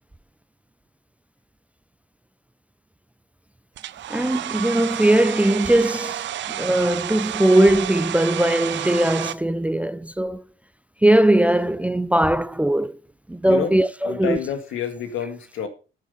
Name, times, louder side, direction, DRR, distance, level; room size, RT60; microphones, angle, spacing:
Domestic sounds home sounds, 3.8-9.3, right 12 dB, 70° right, 0.6 m, -30 dB
voice 1, 4.1-10.4 11.0-13.0 13.3-14.4, right 1 dB, 5° right, 0.4 m, -20 dB
voice 2, 14.0-15.7, left 7 dB, 85° left, 2.0 m, -28 dB
9.6 x 7.4 x 5.6 m
cardioid pair, 90°, 20 cm